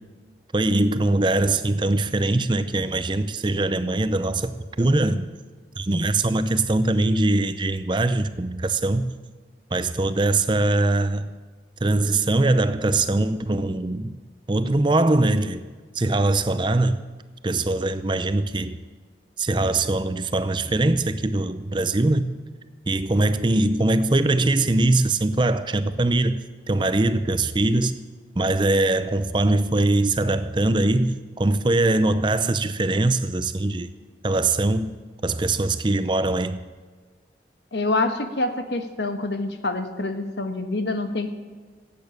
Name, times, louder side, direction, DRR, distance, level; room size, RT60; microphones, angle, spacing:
voice 1, 0.5-5.3 5.8-9.1 9.7-11.3 11.8-14.2 14.5-15.6 15.9-17.0 17.4-18.8 19.4-22.3 22.9-26.4 26.7-28.0 28.4-33.9 34.2-34.9 35.2-36.6, right 2 dB, 25° right, 0.6 m, -22 dB
voice 2, 37.7-41.3, left 2 dB, 80° left, 1.4 m, -26 dB
15.5 x 8.7 x 8.7 m
head